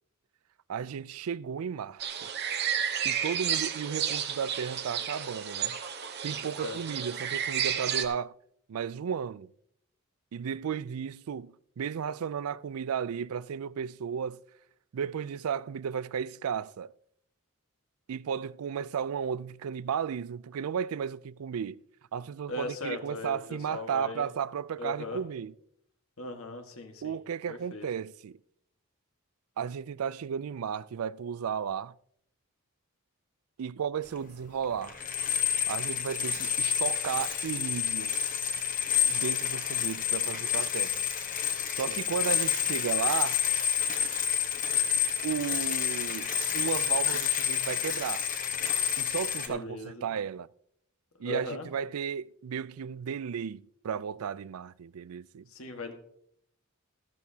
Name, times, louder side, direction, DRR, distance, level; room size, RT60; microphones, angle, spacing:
voice 1, 0.7-2.3 3.0-5.8 6.2-8.3 8.7-9.5 10.3-14.4 14.9-16.9 18.1-21.8 22.1-25.5 27.0-28.4 29.6-31.9 33.6-35.0 35.7-38.2 39.1-41.0 41.8-43.4 45.2-48.3 49.0-50.5 51.2-55.5, right 7 dB, 80° right, 0.4 m, -34 dB
sound 1, 2.0-8.0, right 8 dB, 50° right, 0.9 m, -32 dB
voice 2, 22.5-24.3 24.8-25.2 26.2-27.2 27.5-27.8 41.7-42.0 49.5-50.1 51.2-51.7 55.5-55.9, left 2 dB, 75° left, 1.6 m, -38 dB
sound 2, 34.2-34.3 34.6-49.5, left 9 dB, 40° left, 1.1 m, -29 dB
14.0 x 12.5 x 2.8 m
head